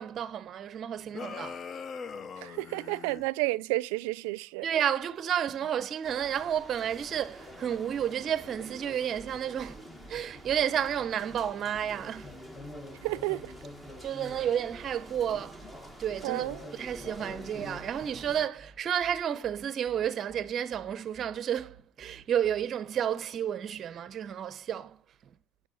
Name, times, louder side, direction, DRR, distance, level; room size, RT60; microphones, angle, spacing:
voice 1, 0.0-1.6 4.6-9.8 10.1-12.3 14.0-15.6 16.0-25.0, right 9 dB, 35° right, 0.7 m, -31 dB
sound 1, 1.1-3.3, left 6 dB, 30° left, 0.5 m, -41 dB
voice 2, 2.4-4.7 13.0-13.5 16.2-16.6, right 22 dB, 80° right, 0.4 m, -31 dB
sound 2, 6.0-18.5, equal, 5° left, 1.2 m, -47 dB
sound 3, 9.1-22.7, right 3 dB, 15° right, 2.2 m, -54 dB
9.4 x 6.2 x 7.8 m
cardioid pair, 140°, 0 cm